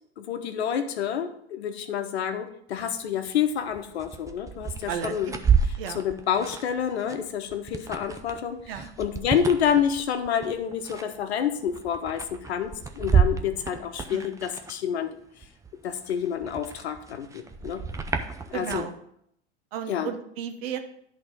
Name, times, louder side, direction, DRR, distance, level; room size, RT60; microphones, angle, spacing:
voice 1, 0.2-5.4 5.6-15.1 15.8-17.9 18.5-18.9 19.9-20.1, left 8 dB, 70° left, 8 dB, 1.1 m, -28 dB
sound 1, 2.7-2.9 3.3-15.1 15.4-18.9, right 6 dB, 10° right, 0.5 m, -30 dB
voice 2, 4.9-5.4 5.8-6.0 8.7-8.9 14.1-14.2 18.5-18.9 19.7-20.8, right 9 dB, 60° right, 7 dB, 1.1 m, -33 dB
10.5 x 3.9 x 5.3 m, 0.71 s
hypercardioid pair, 95°, 33 cm